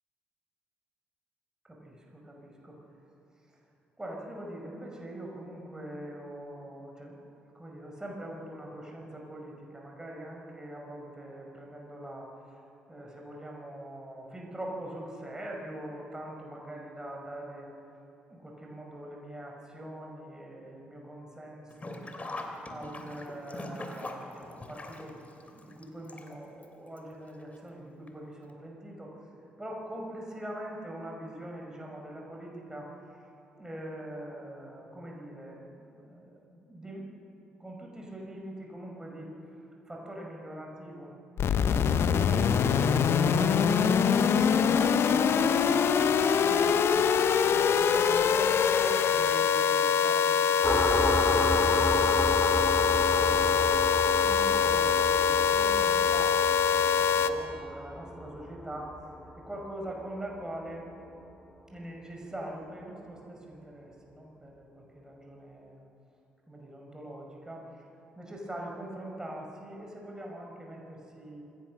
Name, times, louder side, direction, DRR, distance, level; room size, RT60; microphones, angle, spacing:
voice 1, 1.7-2.8 4.0-7.2 7.5-12.6 12.9-17.7 18.3-22.0 22.4-25.1 25.5-29.1 29.6-32.9 33.6-37.1 37.6-39.4 39.9-41.1 41.4-43.8 44.4-46.8 47.3-53.7 54.2-60.9 61.7-65.9 66.5-67.9 68.2-71.4, right 1 dB, 15° right, -1 dB, 5.4 m, -43 dB
Sink (filling or washing), 21.7-26.6 27.0-27.1 28.1-28.2 28.5-28.6, left 2 dB, 25° left, 3.0 m, -41 dB
sound 1, 41.4-57.3, left 7 dB, 50° left, 1.0 m, -24 dB
sound 2, 50.6-59.9, equal, 10° left, 2.6 m, -32 dB
26.0 x 16.5 x 6.4 m, 3.0 s
figure-of-eight pair, 45°, 5 cm